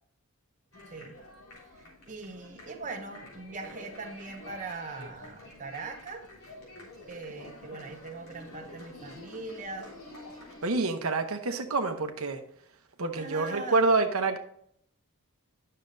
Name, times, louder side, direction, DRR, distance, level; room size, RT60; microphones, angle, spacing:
sound 1, 0.7-10.8, left 2 dB, 85° left, 3.2 m, -48 dB
voice 1, 0.9-1.2 1.8-6.3 7.1-9.9 13.1-13.9, right 3 dB, 35° right, 3 dB, 0.8 m, -41 dB
voice 2, 10.6-12.4 13.0-14.4, right 3 dB, 70° right, 6 dB, 0.9 m, -27 dB
10.5 x 6.5 x 2.6 m, 0.66 s
head